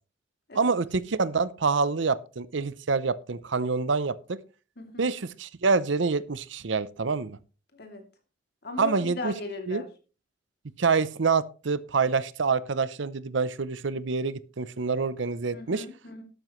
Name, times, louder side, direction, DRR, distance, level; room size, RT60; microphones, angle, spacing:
voice 1, 0.5-4.4 5.0-7.4 8.8-9.3 9.7-9.8 10.8-15.8, right 4 dB, 70° right, 0.6 m, -26 dB
voice 2, 4.8-5.1 7.7-8.1 8.6-9.9 15.5-16.2, left 2 dB, 55° left, 2.8 m, -38 dB
12.5 x 12.5 x 3.1 m
head